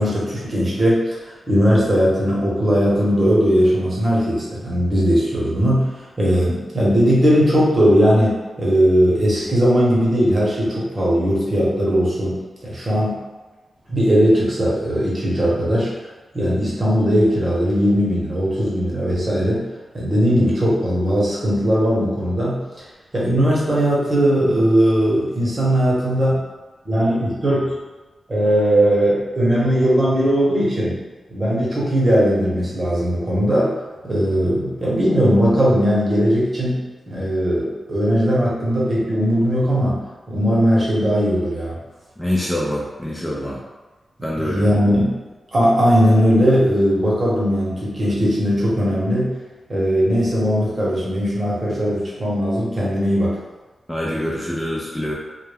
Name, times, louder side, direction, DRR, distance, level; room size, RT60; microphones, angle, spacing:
voice 1, 0.0-12.4 12.6-13.2 13.9-15.9 16.3-19.6 19.9-22.6 23.1-26.4 26.8-27.7 28.3-31.0 31.3-33.7 34.0-36.8 37.1-40.0 40.3-41.8 44.4-45.1 45.5-49.3 49.7-53.4, equal, 35° right, -6 dB, 0.9 m, -18 dB
voice 2, 42.2-43.6 44.2-44.8 53.9-55.1, left 1 dB, 10° left, -5 dB, 0.4 m, -25 dB
2.2 x 2.2 x 3.3 m, 1.2 s
wide cardioid pair, 95°, 0 cm